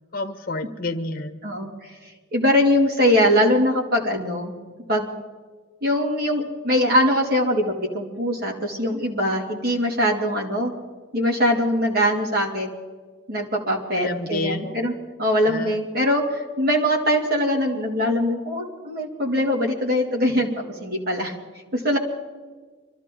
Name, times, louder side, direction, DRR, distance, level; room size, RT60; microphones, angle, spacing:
voice 1, 0.1-1.7 14.0-14.8 15.5-15.8, left 2 dB, 45° left, 8 dB, 1.3 m, -30 dB
voice 2, 2.3-4.5 4.9-5.1 5.8-10.7 11.1-12.7 13.3-14.9 15.2-21.3 21.7-22.0, equal, 50° right, -1 dB, 2.5 m, -22 dB
25.0 x 14.0 x 3.8 m, 1.4 s
head